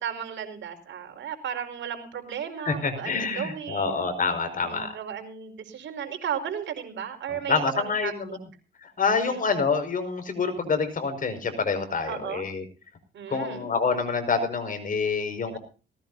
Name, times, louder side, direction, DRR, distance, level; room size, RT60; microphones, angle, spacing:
voice 1, 0.0-4.0 4.6-8.4 9.1-9.4 12.1-12.4 13.1-13.7, right 8 dB, 70° right, 6 dB, 5.1 m, -35 dB
voice 2, 2.7-4.9 7.5-8.3 8.8-12.6 13.3-15.6, left 4 dB, 45° left, 8 dB, 5.4 m, -27 dB
19.0 x 18.5 x 2.7 m, 0.34 s
cardioid pair, 90°, 20 cm